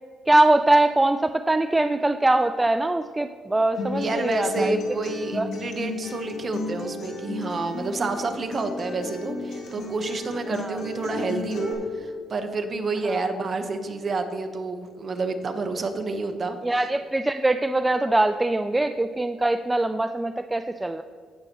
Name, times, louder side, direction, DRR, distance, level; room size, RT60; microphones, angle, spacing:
voice 1, 0.3-4.8 5.3-5.5 10.5-10.8 13.0-13.2 16.6-21.0, right 2 dB, 15° right, 9 dB, 0.3 m, -22 dB
Acoustic guitar, 3.7-11.7, left 3 dB, 75° left, 2.1 m, -33 dB
voice 2, 4.0-16.6, right 3 dB, 40° right, 6 dB, 1.1 m, -29 dB
17.0 x 6.7 x 3.0 m, 2.1 s
cardioid pair, 100°, 0 cm